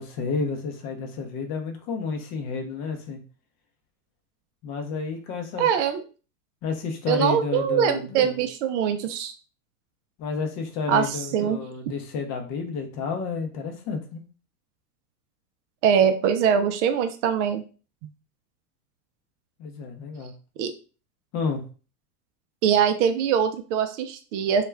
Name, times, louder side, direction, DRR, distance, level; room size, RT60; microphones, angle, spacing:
voice 1, 0.0-3.2 4.6-5.7 6.6-8.4 10.2-14.2 19.6-20.3 21.3-21.6, left 4 dB, 35° left, 4 dB, 0.6 m, -30 dB
voice 2, 5.6-6.0 7.1-9.3 10.9-11.6 11.9-12.0 15.8-17.6 20.6-20.7 22.6-24.6, right 8 dB, 55° right, 8 dB, 0.5 m, -23 dB
2.4 x 2.1 x 3.2 m, 0.37 s
hypercardioid pair, 115°, 46 cm